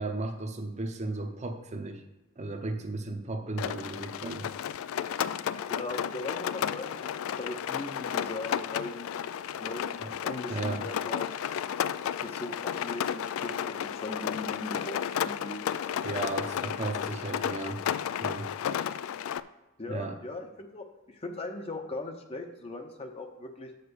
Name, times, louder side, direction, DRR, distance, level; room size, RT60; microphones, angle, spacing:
voice 1, 0.0-2.0 2.4-4.5 10.0-10.2 10.5-10.9 16.0-17.8 18.2-18.5 19.9-20.2, right 2 dB, 35° right, 5 dB, 0.7 m, -35 dB
Rain, 3.6-19.4, left 9 dB, 80° left, 0.3 m, -33 dB
voice 2, 5.7-7.1 7.4-9.2 9.6-11.4 12.0-15.6 16.7-16.8 19.8-23.7, left 2 dB, 30° left, 5 dB, 0.7 m, -39 dB
6.6 x 4.9 x 6.9 m, 1.0 s
head